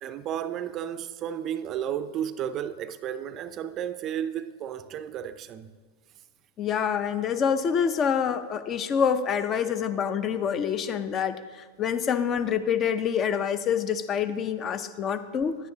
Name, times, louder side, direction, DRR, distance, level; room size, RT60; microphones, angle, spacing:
voice 1, 0.0-5.7, right 9 dB, 35° right, 0.4 m, -33 dB
voice 2, 6.6-15.6, left 7 dB, 35° left, 0.5 m, -26 dB
10.0 x 9.3 x 2.7 m
hypercardioid pair, 105°, 0 cm